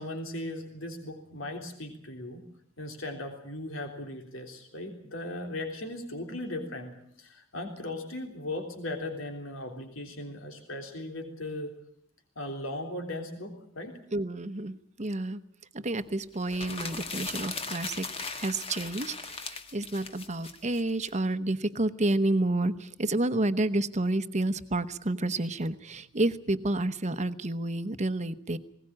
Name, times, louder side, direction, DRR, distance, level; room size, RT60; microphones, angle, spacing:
voice 1, 0.0-2.4 2.8-11.7 12.4-13.9, left 1 dB, 75° left, 4 dB, 3.5 m, -38 dB
voice 2, 14.1-15.4 15.7-18.1 18.4-28.6, right 2 dB, 35° right, 13 dB, 1.0 m, -30 dB
sound 1, 16.4-21.1, left 4 dB, 30° left, 1.5 m, -38 dB
20.5 x 18.0 x 8.8 m, 0.70 s
head